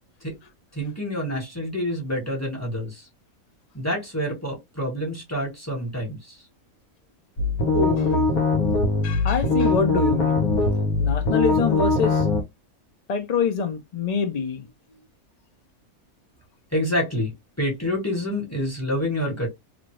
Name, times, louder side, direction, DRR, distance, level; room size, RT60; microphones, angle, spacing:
voice 1, 0.7-3.1 3.7-6.4 16.7-19.5, equal, 10° left, 1.3 m, -27 dB
sound 1, 7.4-12.4, left 3 dB, 85° left, 1.4 m, -21 dB
voice 2, 7.7-8.4 9.0-10.4 11.0-12.2 13.1-14.7, left 5 dB, 50° left, 0.5 m, -25 dB
2.8 x 2.6 x 3.0 m
omnidirectional pair, 1.5 m